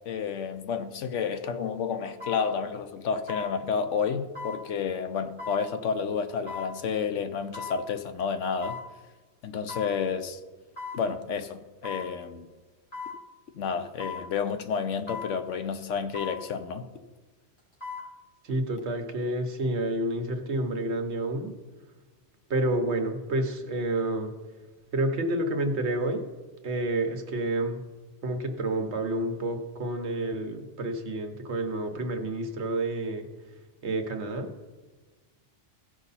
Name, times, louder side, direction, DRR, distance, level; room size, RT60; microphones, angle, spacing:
voice 1, 0.1-8.8 9.4-10.4 10.9-12.5 13.5-16.9, left 6 dB, 85° left, 1.1 m, -30 dB
sound 1, 1.1-1.2 2.2-2.5 3.3-3.5 4.4-4.6 5.4-5.6 6.5-6.7 7.5-7.8 8.6-8.9 9.7-9.9 10.8-11.0 11.8-12.1 12.9-13.2 14.0-14.3 15.1-15.3 16.1-16.4 17.6-18.1 18.5-18.6, left 5 dB, 55° left, 4.0 m, -37 dB
voice 2, 18.4-21.6 22.5-24.3 24.9-26.2 26.6-27.8 28.2-33.3 33.8-34.5, right 1 dB, 65° right, 1.3 m, -29 dB
16.0 x 5.5 x 4.1 m
omnidirectional pair, 1.2 m